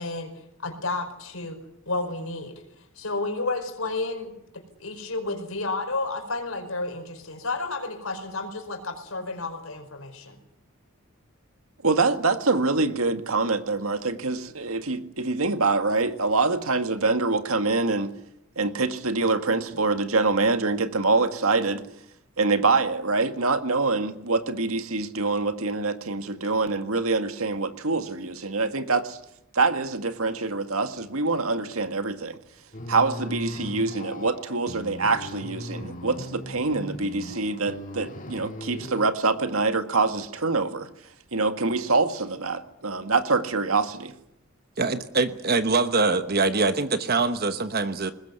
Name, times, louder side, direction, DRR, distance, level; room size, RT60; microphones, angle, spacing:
voice 1, 0.0-1.6 1.9-2.6 3.0-10.4, left 3 dB, 75° left, 6 dB, 5.1 m, -31 dB
voice 2, 11.8-18.1 18.6-21.8 22.4-29.2 29.5-32.4 32.9-40.9 41.3-44.1, right 3 dB, 80° right, 8 dB, 1.9 m, -25 dB
sound 1, 32.7-39.1, left 1 dB, 40° left, 2.2 m, -38 dB
voice 3, 44.8-48.1, right 3 dB, 45° right, 10 dB, 1.1 m, -23 dB
22.5 x 20.0 x 9.6 m, 0.79 s
head